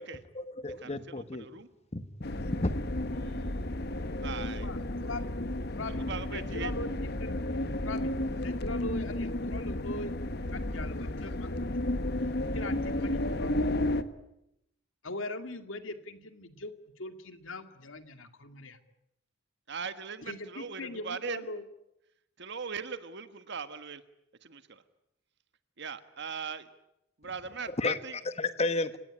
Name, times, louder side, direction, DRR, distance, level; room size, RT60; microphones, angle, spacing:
voice 1, 0.0-1.5 1.9-2.1 2.5-2.7 27.8-28.0 28.2-29.0, left 2 dB, 30° left, 11 dB, 1.4 m, -32 dB
voice 2, 0.7-1.7 3.1-3.7 4.2-4.7 5.8-6.7 19.7-21.4 22.4-24.0 24.4-24.8 25.8-26.7 27.2-28.2, right 5 dB, 60° right, 11 dB, 1.4 m, -40 dB
sound 1, 2.2-14.0, left 1 dB, 55° left, 1.4 m, -32 dB
voice 3, 4.5-5.2 5.8-6.0 6.3-6.9 7.2-7.5 7.8-8.1 8.4-10.1 10.5-11.8 12.2-12.3 12.5-14.0 15.0-16.7 17.0-18.8 20.3-21.6, left 2 dB, 75° left, 8 dB, 2.3 m, -41 dB
29.5 x 18.0 x 9.9 m, 0.84 s
head